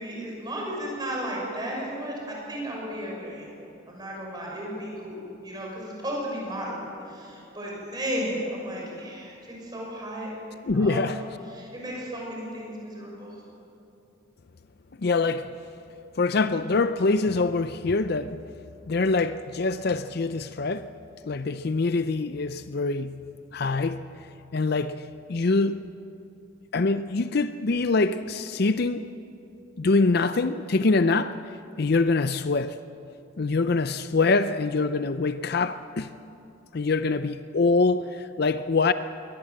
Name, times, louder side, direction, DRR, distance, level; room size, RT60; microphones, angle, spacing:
voice 1, 0.0-10.3 10.7-11.2 11.5-13.4, equal, 20° right, 6.2 m, -34 dB
voice 2, 10.7-11.2 15.0-15.5 16.2-18.4 18.9-20.9 21.2-23.3 23.5-24.1 24.5-25.9 26.7-29.1 29.8-31.4 31.8-32.8 33.4-36.1 36.7-38.9, left 3 dB, 50° left, 0.5 m, -24 dB
22.5 x 18.5 x 7.6 m
head